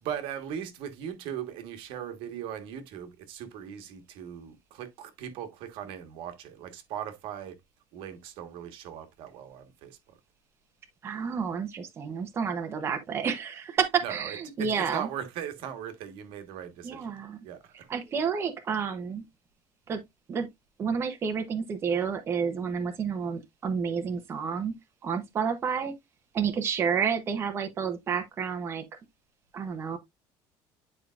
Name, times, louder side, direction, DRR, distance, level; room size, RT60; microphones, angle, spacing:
voice 1, 0.0-7.6 7.9-10.2 14.0-17.9, right 9 dB, 70° right, 1.3 m, -39 dB
voice 2, 11.0-15.1 16.8-17.4 17.9-19.2 19.9-20.0 20.3-20.5 20.8-24.7 25.0-25.9 26.3-28.8 29.5-30.0, right 6 dB, 25° right, 0.8 m, -30 dB
9.9 x 4.7 x 2.4 m
cardioid pair, 170°, 9 cm